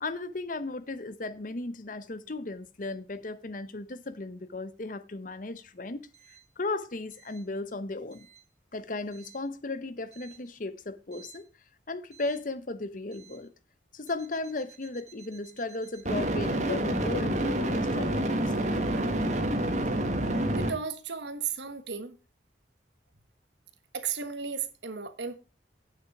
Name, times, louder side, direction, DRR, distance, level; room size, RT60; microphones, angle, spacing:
voice 1, 0.0-6.1 6.6-8.3 8.7-11.5 11.9-13.5 13.9-18.7, left 2 dB, 45° left, 0.8 m, -36 dB
sound 1, 11.2-11.3 16.1-20.7, right 1 dB, 40° right, 1.7 m, -28 dB
voice 2, 20.5-22.2 23.9-25.4, right 6 dB, 70° right, 1.4 m, -34 dB
9.2 x 6.9 x 5.9 m
head